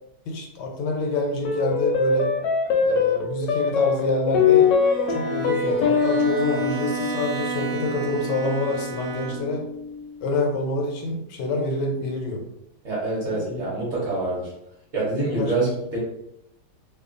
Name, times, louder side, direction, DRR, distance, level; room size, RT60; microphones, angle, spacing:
voice 1, 0.3-2.3 2.8-4.7 5.1-9.6 10.2-12.4 13.3-13.7 15.4-15.7, left 2 dB, 85° left, 2 dB, 1.3 m, -27 dB
sound 1, 1.4-10.1, left 5 dB, 70° left, 0.9 m, -23 dB
Bowed string instrument, 4.4-9.7, right 5 dB, 75° right, 1.1 m, -34 dB
voice 2, 12.8-14.5 14.9-16.0, right 2 dB, 50° right, -6 dB, 1.0 m, -26 dB
2.9 x 2.2 x 2.4 m, 0.80 s
omnidirectional pair, 1.8 m